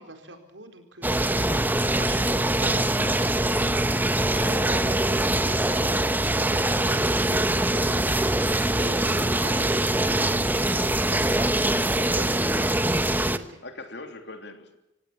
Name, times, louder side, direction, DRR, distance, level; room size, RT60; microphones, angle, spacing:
voice 1, 0.0-4.1 4.4-12.8 13.2-13.6, right 2 dB, 85° right, 5 dB, 4.3 m, -43 dB
sound 1, 1.0-13.4, right 1 dB, 10° right, 1.0 m, -23 dB
voice 2, 13.6-14.8, left 2 dB, 65° left, 6 dB, 2.9 m, -41 dB
26.0 x 17.5 x 7.3 m, 0.93 s
head